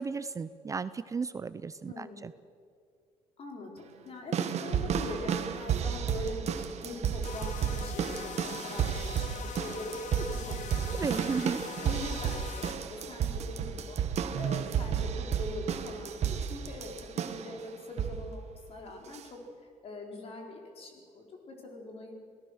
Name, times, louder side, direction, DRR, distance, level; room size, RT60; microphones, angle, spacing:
voice 1, 0.0-2.3 10.9-11.6, right 5 dB, 25° right, 14 dB, 0.5 m, -34 dB
voice 2, 1.9-2.2 3.4-11.4 11.8-22.1, left 2 dB, 45° left, 2 dB, 4.1 m, -42 dB
sound 1, 4.3-17.5 18.0-18.3 19.1-19.2, right 8 dB, 55° right, 1.4 m, -32 dB
sound 2, 7.2-12.8, left 8 dB, 65° left, 1.2 m, -42 dB
27.0 x 18.0 x 6.4 m, 2.2 s
cardioid pair, 130°, 13 cm